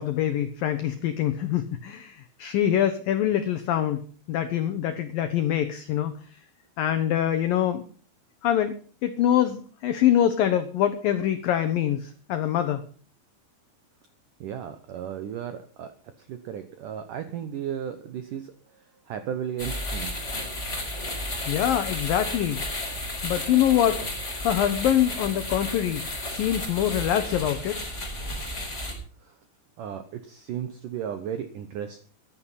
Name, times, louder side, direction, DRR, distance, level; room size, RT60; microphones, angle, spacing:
voice 1, 0.0-6.4 6.8-7.8 8.4-8.8 9.0-12.8 21.5-22.6 23.2-24.0 24.4-27.8, left 11 dB, 75° left, 9 dB, 2.1 m, -24 dB
voice 2, 14.4-15.9 16.2-18.5 19.1-20.1 29.8-32.0, right 9 dB, 80° right, 9 dB, 1.8 m, -34 dB
sound 1, 19.6-28.9, left 1 dB, 15° left, 3.9 m, -33 dB
14.5 x 11.0 x 5.8 m, 0.41 s
omnidirectional pair, 5.4 m